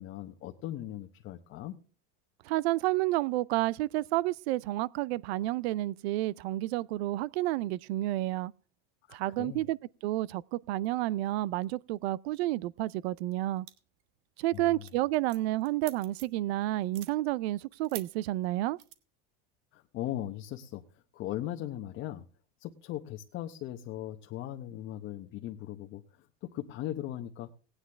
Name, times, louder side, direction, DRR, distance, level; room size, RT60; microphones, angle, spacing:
voice 1, 0.0-1.8 9.1-9.6 14.5-14.9 19.7-22.2 22.6-27.5, left 13 dB, 40° left, 0.9 m, -39 dB
voice 2, 2.4-8.5 9.1-9.8 10.0-13.7 14.4-18.8, right 16 dB, 80° right, 0.6 m, -30 dB
sound 1, 13.7-14.0 14.4-14.6 14.9-16.4 16.8-17.1 17.8-18.1 18.8-18.9, right 13 dB, 65° right, 1.4 m, -45 dB
18.0 x 9.8 x 3.4 m
supercardioid pair, 155°, 31 cm